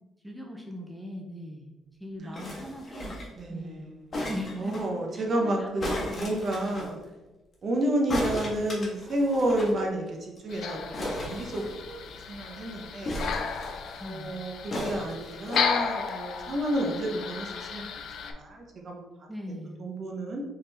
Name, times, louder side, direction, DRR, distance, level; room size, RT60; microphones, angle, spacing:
voice 1, 0.2-1.7 2.0-3.2 3.5-3.9 4.3-6.5 14.0-14.4 19.3-19.8, left 1 dB, 5° right, 0 dB, 0.7 m, -39 dB
voice 2, 2.2-2.5 3.4-4.2 4.6-5.9 6.2-7.0 7.6-12.0 12.3-13.2 14.0-19.0 19.8-20.4, right 1 dB, 50° right, 1 dB, 1.0 m, -30 dB
sound 1, 2.3-3.4 4.1-4.9 5.8-6.9 8.1-9.8 10.1-10.2 10.4-10.5 10.9-12.1 13.0-14.0 14.7-15.7 16.4-16.5, left 1 dB, 35° left, 1.4 m, -35 dB
sound 2, 10.5-18.3, left 6 dB, 70° left, 0.5 m, -34 dB
4.0 x 3.8 x 3.5 m, 1.1 s
cardioid pair, 90°, 0 cm